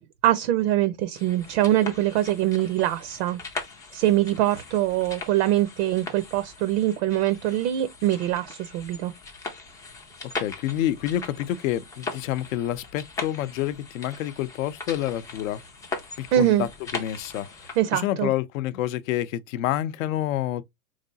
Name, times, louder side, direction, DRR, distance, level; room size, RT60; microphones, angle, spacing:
voice 1, 0.2-3.4 3.9-9.1 16.3-16.7 17.8-18.3, right 13 dB, 50° right, 0.6 m, -23 dB
sound 1, 1.1-17.8, left 3 dB, 10° left, 0.3 m, -39 dB
voice 2, 10.4-15.6 16.2-20.6, left 12 dB, 60° left, 0.6 m, -28 dB
3.8 x 3.3 x 2.6 m
hypercardioid pair, 125°, 45 cm